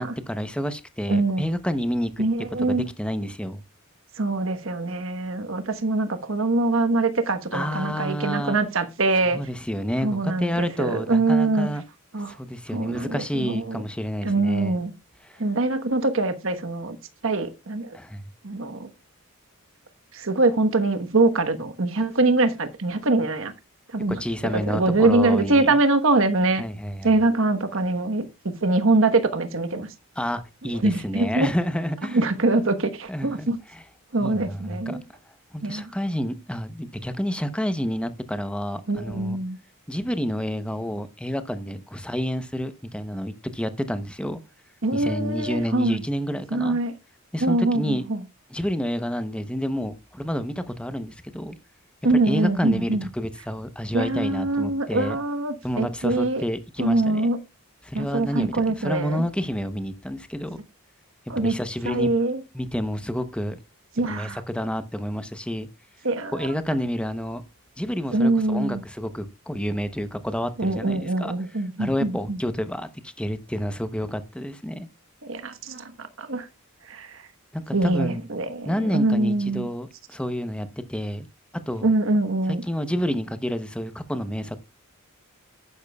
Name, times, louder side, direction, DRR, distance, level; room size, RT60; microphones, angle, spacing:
voice 1, 0.0-2.2 2.6-3.6 7.5-8.6 9.2-11.8 12.3-14.8 15.2-15.4 17.9-18.2 24.2-25.8 26.6-27.1 30.2-32.2 33.1-33.8 34.2-35.0 35.5-39.4 39.9-44.4 44.9-46.8 47.3-48.0 48.5-51.6 52.1-55.2 55.6-57.3 57.8-60.6 61.4-62.1 62.5-63.6 64.0-65.7 66.3-67.4 67.8-71.3 71.8-74.9 77.5-78.2 78.7-81.3 81.7-81.9 82.6-84.6, equal, 5° left, 0.8 m, -29 dB
voice 2, 1.1-1.4 2.2-2.9 4.2-9.4 10.0-11.7 12.1-12.3 12.7-13.8 14.2-14.9 15.4-17.0 17.2-18.0 18.4-18.9 20.1-23.5 23.9-24.2 24.5-26.6 27.0-28.3 28.6-29.9 30.8-31.5 32.1-33.6 34.1-35.0 35.6-35.9 38.9-39.6 44.8-46.0 46.5-46.9 47.4-48.2 52.0-53.1 53.9-56.4 56.8-57.4 57.9-59.2 61.3-61.6 61.8-62.4 64.0-64.4 66.0-66.5 68.1-68.8 70.6-72.4 75.2-76.5 76.9-77.2 77.7-79.7 81.8-82.6, right 2 dB, 65° right, 1.2 m, -23 dB
11.0 x 10.0 x 2.3 m
head